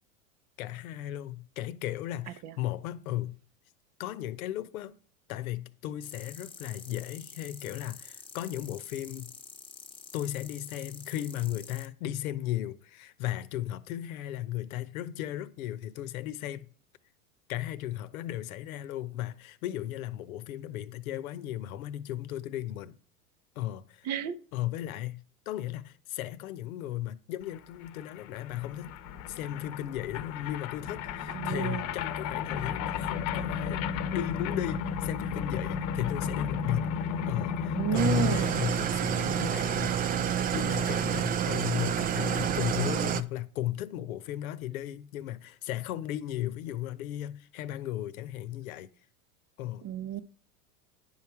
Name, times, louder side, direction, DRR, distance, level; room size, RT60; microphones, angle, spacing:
voice 1, 0.6-3.4 4.0-5.0 5.3-9.3 10.1-16.7 17.5-23.0 23.5-24.1 24.5-29.0 29.3-37.0 37.3-40.0 40.5-48.9 49.6-49.8, left 13 dB, 65° left, 0.9 m, -35 dB
sound 1, 6.0-11.9, left 4 dB, 10° left, 1.0 m, -48 dB
voice 2, 24.0-24.3 31.3-31.8 37.7-38.5 49.8-50.2, right 9 dB, 35° right, 0.8 m, -31 dB
sound 2, 27.5-27.6 27.8-38.7, left 6 dB, 40° left, 1.0 m, -34 dB
Engine starting / Idling, 37.9-43.2, right 9 dB, 20° right, 0.4 m, -29 dB
10.5 x 5.7 x 4.8 m
hypercardioid pair, 95°, 45 cm